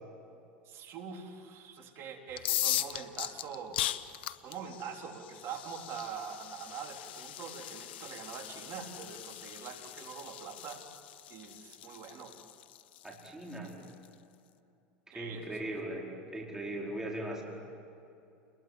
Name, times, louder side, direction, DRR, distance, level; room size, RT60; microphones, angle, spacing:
voice 1, 0.7-3.8 4.4-10.8 11.3-12.4 15.1-15.9, right 6 dB, 50° right, 3 dB, 3.7 m, -44 dB
sound 1, 2.3-14.1, left 13 dB, 80° left, 1.0 m, -39 dB
voice 2, 13.0-13.8 15.1-16.0 16.3-17.4, right 1 dB, 10° right, -2 dB, 4.9 m, -39 dB
29.5 x 21.5 x 7.8 m, 2.7 s
hypercardioid pair, 95°, 6 cm